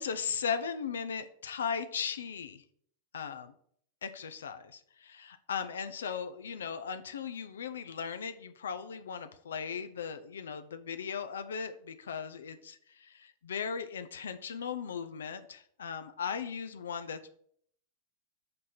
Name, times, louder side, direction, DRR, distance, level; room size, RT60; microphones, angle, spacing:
voice 1, 0.0-2.6 3.1-3.5 4.0-17.3, left 6 dB, 90° left, 10 dB, 0.5 m, -37 dB
5.3 x 4.1 x 5.9 m, 0.65 s
hypercardioid pair, 120°, 0 cm